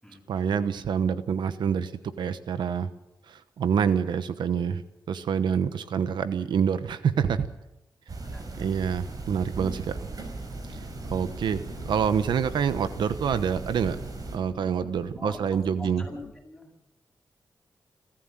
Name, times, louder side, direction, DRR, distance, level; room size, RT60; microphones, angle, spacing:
voice 1, 0.3-1.9 2.2-2.9 3.3-4.8 5.1-7.5 8.6-10.1 10.7-10.8 11.1-14.0 14.3-16.0, right 7 dB, 85° right, 12 dB, 1.1 m, -27 dB
sound 1, 8.1-14.4, right 3 dB, 55° right, 5.0 m, -38 dB
voice 2, 8.2-8.7 15.2-16.7, left 1 dB, ahead, 0 dB, 7.8 m, -44 dB
sound 2, 10.5-16.3, left 5 dB, 85° left, 2.6 m, -47 dB
26.0 x 14.0 x 7.6 m, 0.91 s
cardioid pair, 65°, 8 cm